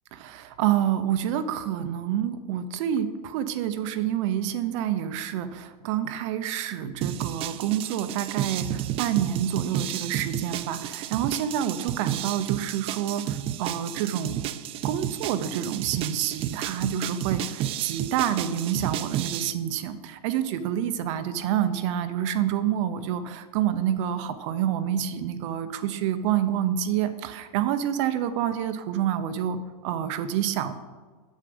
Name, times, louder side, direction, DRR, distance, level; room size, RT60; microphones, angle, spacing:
voice 1, 0.1-14.5 14.8-30.7, right 10 dB, 50° right, 11 dB, 0.7 m, -28 dB
sound 1, 7.0-19.5, right 11 dB, 30° right, 0.4 m, -32 dB
7.5 x 7.4 x 5.2 m, 1.4 s
hypercardioid pair, 125°, 20 cm